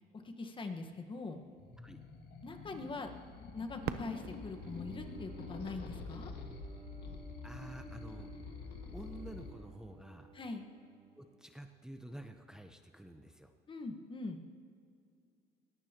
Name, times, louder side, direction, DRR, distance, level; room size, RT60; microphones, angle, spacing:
voice 1, 0.1-1.4 2.4-3.1 3.5-6.3 10.3-10.7 13.7-14.4, left 3 dB, 30° left, 5 dB, 1.4 m, -42 dB
sound 1, 1.6-9.5, left 4 dB, 70° left, 1.9 m, -47 dB
Fireworks, 3.8-6.6 7.3-7.4 8.1-8.5 10.4-10.5, right 10 dB, 70° right, 0.8 m, -46 dB
Bowed string instrument, 4.5-11.8, right 4 dB, 55° right, 3.3 m, -55 dB
voice 2, 7.4-8.3 8.9-10.3 11.2-13.5, right 1 dB, 5° right, 6 dB, 0.8 m, -49 dB
21.5 x 17.0 x 3.0 m, 2.4 s
cardioid pair, 110°, 17 cm